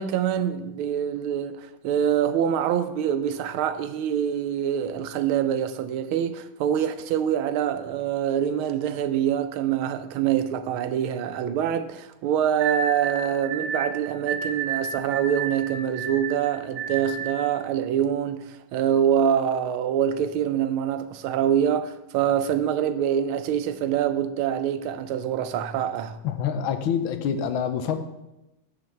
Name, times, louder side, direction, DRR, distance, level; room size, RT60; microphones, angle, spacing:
voice 1, 0.0-26.2, right 9 dB, 90° right, 1.5 m, -25 dB
sound 1, 12.6-17.5, right 5 dB, 55° right, 1.1 m, -31 dB
voice 2, 26.2-28.0, left 8 dB, 80° left, 1.5 m, -26 dB
9.4 x 3.9 x 6.7 m
omnidirectional pair, 2.2 m